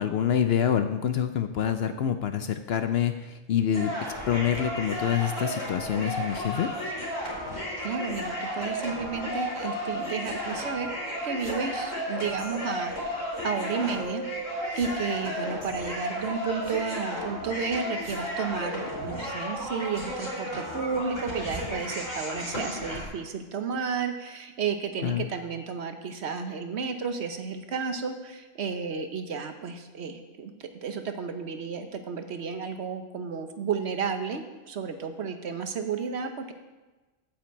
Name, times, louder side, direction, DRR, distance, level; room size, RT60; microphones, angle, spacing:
voice 1, 0.0-3.9 4.3-6.7 25.0-25.3, left 9 dB, 65° left, 9 dB, 0.7 m, -26 dB
sound 1, 3.7-23.0, equal, 80° left, 3.6 m, -33 dB
voice 2, 7.8-10.9 11.2-14.2 14.7-30.5 30.8-36.5, right 5 dB, 60° right, 7 dB, 1.1 m, -32 dB
8.5 x 5.9 x 7.8 m, 1.2 s
omnidirectional pair, 1.3 m